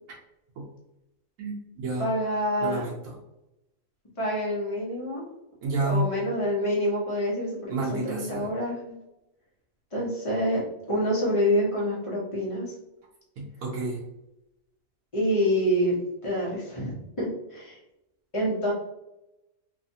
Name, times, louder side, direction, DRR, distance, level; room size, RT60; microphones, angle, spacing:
voice 1, 1.4-2.1 2.6-3.1 5.6-6.1 7.7-8.5 13.4-14.0, right 2 dB, 90° right, -4 dB, 1.1 m, -30 dB
voice 2, 2.0-2.8 4.2-5.2 5.9-9.0 9.9-10.6 10.9-12.7 15.1-16.0 16.2-17.8 18.3-18.7, equal, 30° left, -5 dB, 0.8 m, -27 dB
2.8 x 2.4 x 2.6 m, 0.90 s
omnidirectional pair, 1.4 m